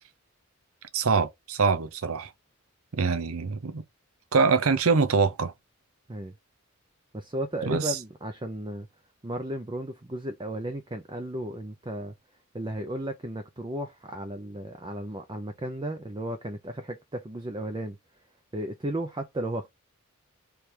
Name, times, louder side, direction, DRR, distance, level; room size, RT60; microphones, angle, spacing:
voice 1, 0.9-2.3 2.9-3.8 4.3-5.5 7.6-8.0, right 4 dB, 75° right, 0.7 m, -24 dB
voice 2, 7.1-8.9 9.2-12.1 12.5-18.0 18.5-19.7, right 1 dB, 20° right, 0.6 m, -34 dB
3.4 x 3.3 x 4.5 m
head